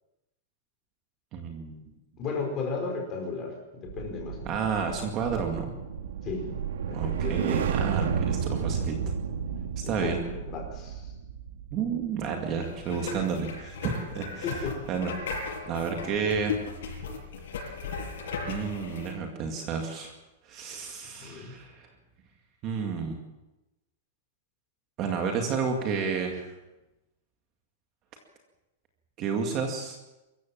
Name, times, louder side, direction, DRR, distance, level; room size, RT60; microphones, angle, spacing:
voice 1, 1.3-1.9 4.5-5.7 6.9-9.0 9.8-10.2 11.7-14.6 14.9-16.6 18.5-20.1 20.5-21.9 22.6-23.2 25.0-26.5 29.2-30.0, right 6 dB, 25° right, 3 dB, 2.1 m, -31 dB
voice 2, 2.2-4.6 6.2-6.5 6.9-7.6 9.8-11.0 14.4-14.8 21.2-21.5, left 4 dB, 20° left, 1 dB, 5.0 m, -34 dB
sound 1, 3.9-14.3 14.6-14.9, right 7 dB, 75° right, 1.8 m, -32 dB
sound 2, 12.6-19.1, left 4 dB, 65° left, 7.8 m, -36 dB
24.5 x 15.0 x 7.5 m, 1.0 s
supercardioid pair, 175°, 0 cm